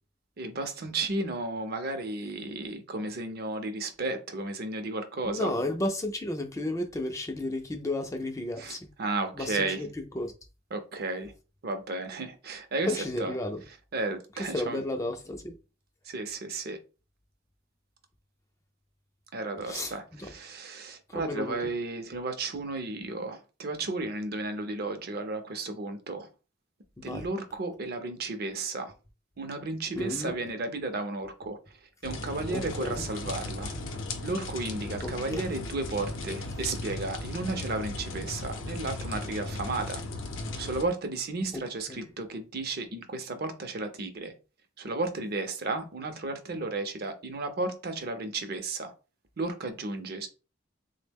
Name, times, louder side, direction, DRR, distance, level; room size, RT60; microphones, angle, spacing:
voice 1, 0.4-5.5 8.6-9.8 10.7-11.3 11.6-13.3 13.9-14.8 16.0-16.8 19.3-26.3 27.0-28.9 29.4-33.7 34.2-40.0 40.6-44.3 44.8-48.9 49.4-50.3, right 3 dB, 50° right, 0.5 m, -33 dB
voice 2, 5.2-8.9 9.3-10.3 12.9-13.6 14.5-15.5 19.6-20.3 21.1-21.6 27.0-27.3 30.0-30.3 32.5-33.0 35.0-35.4 41.9-42.1, left 1 dB, 15° left, 0.3 m, -33 dB
sound 1, 32.0-40.8, left 2 dB, 70° left, 0.6 m, -36 dB
3.5 x 2.1 x 3.4 m
head